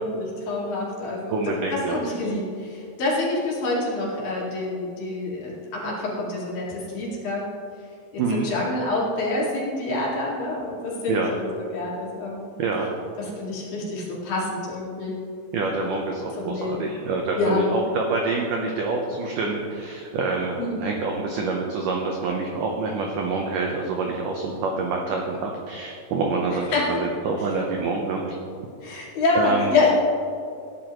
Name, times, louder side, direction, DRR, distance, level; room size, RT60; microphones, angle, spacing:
voice 1, 0.0-1.4 1.7-7.4 8.1-12.5 13.2-15.2 16.4-16.8 17.4-17.7 20.6-20.9 26.7-26.9 28.8-29.9, left 2 dB, 60° left, -5 dB, 3.8 m, -27 dB
voice 2, 1.3-2.0 8.2-8.5 11.1-11.4 12.6-12.9 15.5-28.4 29.4-29.7, right 3 dB, 85° right, 1 dB, 1.9 m, -26 dB
17.5 x 10.0 x 3.1 m, 2.4 s
omnidirectional pair, 5.1 m